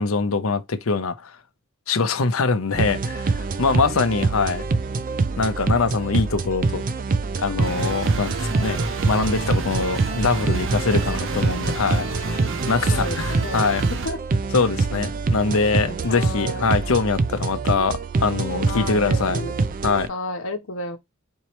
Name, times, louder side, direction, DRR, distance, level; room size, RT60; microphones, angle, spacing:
voice 1, 0.0-1.4 1.9-4.6 5.4-6.8 7.4-8.8 9.1-13.8 14.5-19.4 19.8-20.1, left 4 dB, 90° left, 0.7 m, -23 dB
sound 1, 2.7-20.1, right 3 dB, 40° right, 0.4 m, -25 dB
sound 2, 7.6-14.1, right 3 dB, 65° right, 0.8 m, -30 dB
voice 2, 12.9-13.6 13.9-14.2 16.1-16.6 18.6-19.5 20.1-21.0, left 2 dB, 70° left, 1.0 m, -31 dB
4.5 x 3.0 x 3.0 m
head